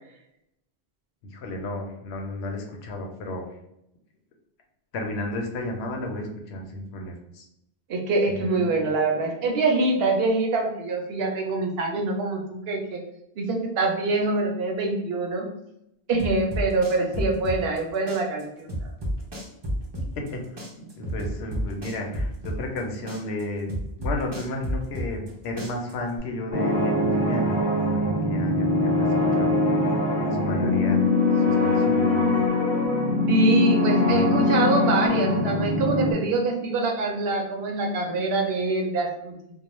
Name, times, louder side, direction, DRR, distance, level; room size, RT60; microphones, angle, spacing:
voice 1, 1.2-3.5 4.9-7.4 8.3-8.8 20.2-20.4 20.8-29.6 30.2-31.1 31.5-32.4 34.1-34.5, left 1 dB, 90° left, 2 dB, 0.8 m, -33 dB
voice 2, 7.9-13.0 13.4-15.5 16.1-18.7 33.3-39.3, right 3 dB, 70° right, 2 dB, 0.8 m, -24 dB
sound 1, 16.2-17.8 18.1-20.3 20.6-22.8 23.1-25.3 25.6-26.2, equal, 35° right, 0.4 m, -30 dB
sound 2, 26.5-36.1, left 2 dB, 50° left, 0.9 m, -22 dB
2.3 x 2.0 x 2.9 m, 0.81 s
omnidirectional pair, 1.1 m